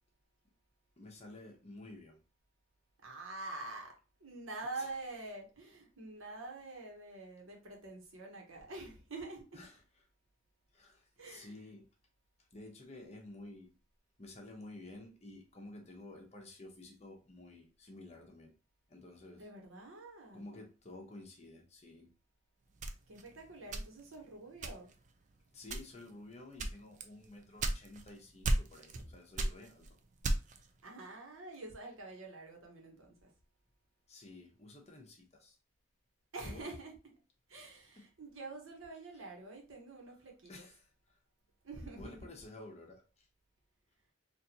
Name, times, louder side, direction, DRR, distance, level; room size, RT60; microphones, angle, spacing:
voice 1, 1.0-2.2 4.8-4.9 9.5-9.7 10.7-11.8 12.4-13.7 14.2-18.5 18.9-19.4 20.3-22.1 25.5-30.0 34.1-35.6 36.4-36.7 37.5-37.6 38.0-38.1 40.5-41.2 41.9-43.3, left 2 dB, 30° left, 2 dB, 0.8 m, -52 dB
voice 2, 3.0-3.9 4.2-9.6 11.2-11.5 19.3-20.4 23.1-24.9 28.9-29.1 30.8-33.3 36.3-36.9 37.5-40.7 41.6-42.3, right 2 dB, 85° right, 0 dB, 1.2 m, -46 dB
sound 1, 22.8-24.2 24.6-25.1 25.6-26.1 26.6-28.1 28.4-29.1 29.3-30.7, right 1 dB, 35° right, 0.4 m, -34 dB
4.2 x 2.6 x 2.7 m, 0.33 s
head